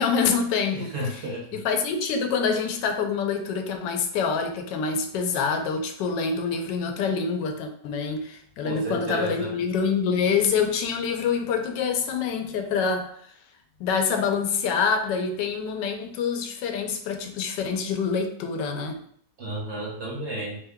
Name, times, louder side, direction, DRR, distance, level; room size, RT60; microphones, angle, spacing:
voice 1, 0.0-13.1 13.8-19.0, left 5 dB, 90° left, 4 dB, 1.2 m, -26 dB
voice 2, 0.7-1.5 8.6-9.5 19.4-20.6, right 1 dB, 60° right, -2 dB, 0.7 m, -32 dB
3.2 x 2.2 x 3.4 m, 0.64 s
omnidirectional pair, 1.9 m